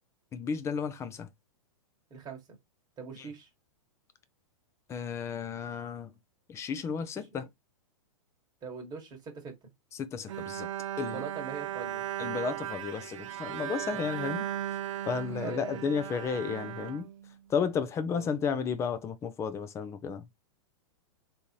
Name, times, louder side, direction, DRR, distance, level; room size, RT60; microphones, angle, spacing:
voice 1, 0.3-1.3 4.9-6.2 6.5-7.5 10.1-10.7 11.0-11.2 12.2-14.4 15.1-17.1 17.5-20.2, left 6 dB, 15° left, 0.4 m, -33 dB
voice 2, 2.1-2.4 3.0-3.5 7.1-7.3 8.6-9.5 11.0-12.0 13.9-14.1 15.4-15.9 18.1-18.3, right 5 dB, 25° right, 1.4 m, -42 dB
Bowed string instrument, 10.3-17.7, right 11 dB, 60° right, 0.5 m, -37 dB
3.7 x 2.7 x 2.9 m
hypercardioid pair, 135°, 18 cm